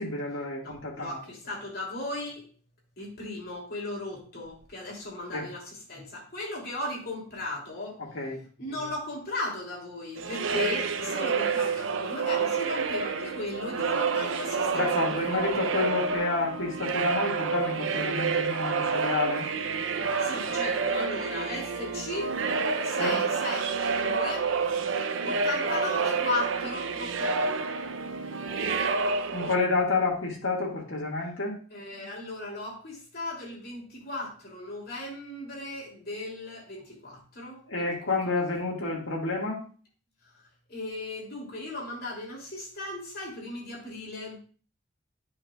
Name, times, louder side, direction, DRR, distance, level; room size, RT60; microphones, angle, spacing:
voice 1, 0.0-1.2 5.3-5.5 8.0-8.4 14.7-19.5 23.0-23.2 29.3-31.6 37.7-39.6, left 3 dB, 75° left, -1 dB, 1.9 m, -29 dB
voice 2, 0.6-2.5 3.0-8.0 8.6-15.5 20.2-22.4 22.8-24.5 25.2-27.7 31.7-38.2 40.3-40.4 40.7-44.4, left 2 dB, 55° left, -2 dB, 2.8 m, -36 dB
sound 1, 10.2-29.6, right 5 dB, 75° right, 0.5 m, -29 dB
9.7 x 5.7 x 2.3 m, 0.39 s
head